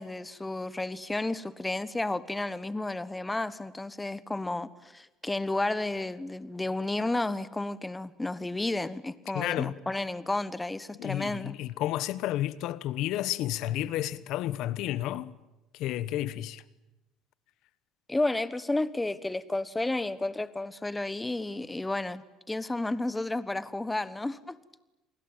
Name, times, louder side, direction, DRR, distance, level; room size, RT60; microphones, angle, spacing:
voice 1, 0.0-11.6 18.1-24.6, left 2 dB, 10° left, 1.2 m, -32 dB
voice 2, 9.3-9.7 11.0-15.3 15.7-16.6, left 13 dB, 70° left, 1.1 m, -31 dB
29.0 x 20.5 x 9.0 m
cardioid pair, 110°, 0 cm